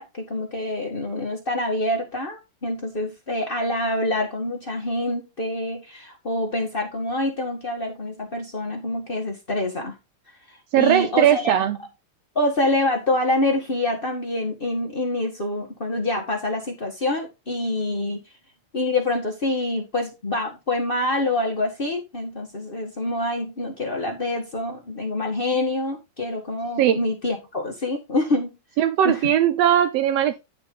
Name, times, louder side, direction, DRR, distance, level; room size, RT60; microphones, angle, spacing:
voice 1, 0.0-10.0 10.5-11.5 12.3-18.2 18.7-28.5 29.0-29.3, left 2 dB, 40° left, 0.7 m, -26 dB
voice 2, 10.7-11.8 26.8-27.0 28.8-30.4, right 11 dB, 80° right, 1.4 m, -19 dB
11.0 x 3.8 x 5.3 m
omnidirectional pair, 3.7 m